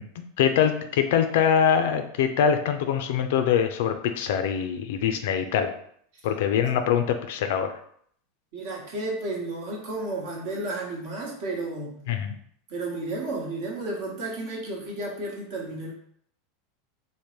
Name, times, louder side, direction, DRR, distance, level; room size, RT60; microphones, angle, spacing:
voice 1, 0.0-5.7 6.2-7.7 12.1-12.4, left 8 dB, 65° left, 7 dB, 0.4 m, -24 dB
voice 2, 8.5-12.0 12.7-15.9, right 2 dB, 60° right, -1 dB, 1.0 m, -32 dB
3.6 x 2.1 x 3.0 m, 0.65 s
hypercardioid pair, 85°, 0 cm